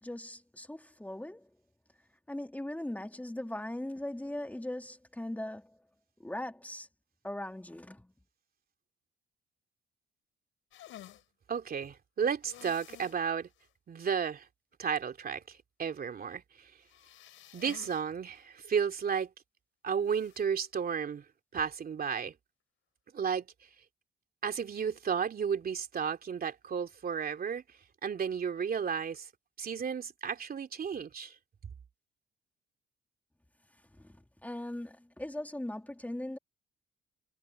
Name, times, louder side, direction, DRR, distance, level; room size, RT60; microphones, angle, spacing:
voice 1, 0.0-1.5 2.3-5.8 6.2-6.9 7.2-8.1 34.0-36.4, left 1 dB, 10° left, 3.3 m, -39 dB
sound 1, 10.7-11.2 12.4-13.2 13.6-13.7 14.1-14.2 16.8-18.0 18.3-18.4 20.1-20.4, left 12 dB, 80° left, 5.2 m, -52 dB
voice 2, 11.5-13.5 13.9-14.5 14.8-16.7 17.5-19.3 19.8-21.2 21.5-22.3 23.1-23.5 24.4-27.6 28.0-29.3 29.6-31.3, right 7 dB, 50° right, 2.9 m, -33 dB
cardioid pair, 90°, 20 cm